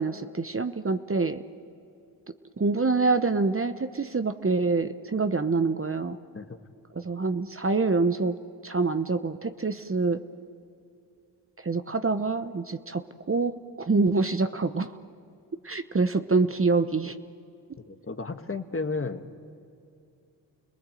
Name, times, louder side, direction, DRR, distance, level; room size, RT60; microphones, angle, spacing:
voice 1, 0.0-1.4 2.6-6.2 6.9-8.4 8.6-10.2 11.6-14.9 15.6-17.1, right 3 dB, 30° right, 10 dB, 1.0 m, -26 dB
voice 2, 17.9-19.4, left 3 dB, 30° left, 8 dB, 1.5 m, -33 dB
29.5 x 19.5 x 7.7 m, 2.6 s
cardioid pair, 45°, 43 cm